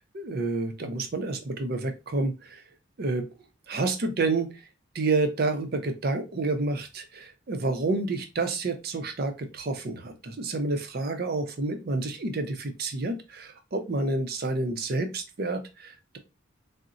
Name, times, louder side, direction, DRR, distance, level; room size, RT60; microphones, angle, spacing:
voice 1, 0.1-2.6 3.0-3.3 3.7-4.6 4.9-16.2, right 3 dB, 50° right, 7 dB, 0.5 m, -29 dB
3.9 x 2.1 x 2.4 m, 0.27 s
head